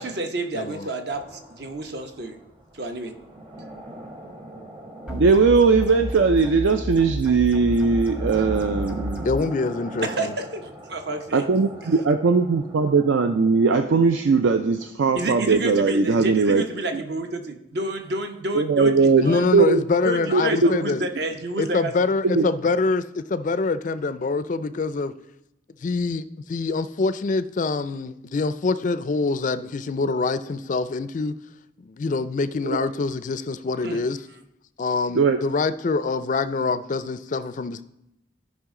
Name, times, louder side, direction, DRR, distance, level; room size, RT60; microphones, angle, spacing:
voice 1, 0.0-2.4 2.7-3.2 10.0-11.5 15.1-19.5 20.0-22.1 33.8-34.0, right 2 dB, 55° right, 0.9 m, -30 dB
voice 2, 0.5-0.9 9.2-10.3 19.2-21.0 21.6-25.1 25.8-26.2 26.5-31.3 31.8-34.2 34.8-37.8, left 3 dB, 40° left, 0.3 m, -25 dB
sound 1, 1.1-14.9, right 1 dB, 25° right, 1.0 m, -42 dB
sound 2, 5.1-9.5, equal, 5° right, 0.7 m, -31 dB
voice 3, 5.1-9.3 11.3-16.6 16.9-17.0 18.5-19.8 20.3-20.9 22.2-22.5 32.6-32.8 35.1-35.4, right 4 dB, 75° right, 0.4 m, -19 dB
13.5 x 5.3 x 3.7 m
head